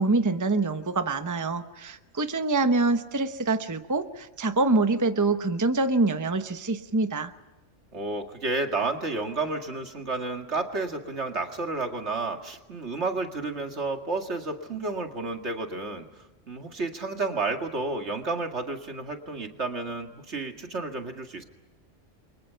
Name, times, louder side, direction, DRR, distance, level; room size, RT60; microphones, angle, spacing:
voice 1, 0.0-7.3, right 3 dB, 15° right, 8 dB, 0.9 m, -25 dB
voice 2, 7.9-16.1 16.5-21.4, right 3 dB, 75° right, 4 dB, 2.4 m, -31 dB
30.0 x 24.0 x 5.7 m, 1.1 s
omnidirectional pair, 1.2 m